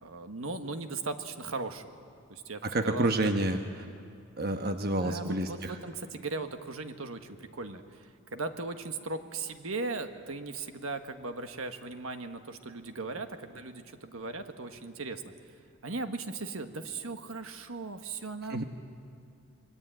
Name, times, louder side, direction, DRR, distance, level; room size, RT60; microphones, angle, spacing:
voice 1, 0.0-1.9 2.3-3.2 5.0-15.3 15.8-18.6, right 3 dB, 70° right, 7 dB, 1.5 m, -38 dB
voice 2, 2.6-3.6 4.4-5.8 18.5-18.6, right 1 dB, 45° right, 6 dB, 1.2 m, -29 dB
27.0 x 23.0 x 9.1 m, 2.4 s
head